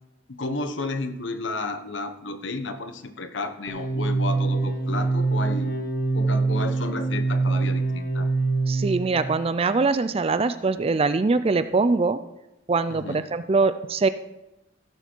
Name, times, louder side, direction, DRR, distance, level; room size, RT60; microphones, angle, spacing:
voice 1, 0.3-5.7 6.1-8.3 12.9-13.2, left 2 dB, 80° left, 9 dB, 1.1 m, -32 dB
sound 1, 3.7-9.3, right 3 dB, 50° left, 1.6 m, -24 dB
voice 2, 8.7-12.2 12.7-14.1, right 3 dB, 30° right, 13 dB, 0.4 m, -23 dB
15.5 x 7.0 x 4.5 m, 0.94 s
head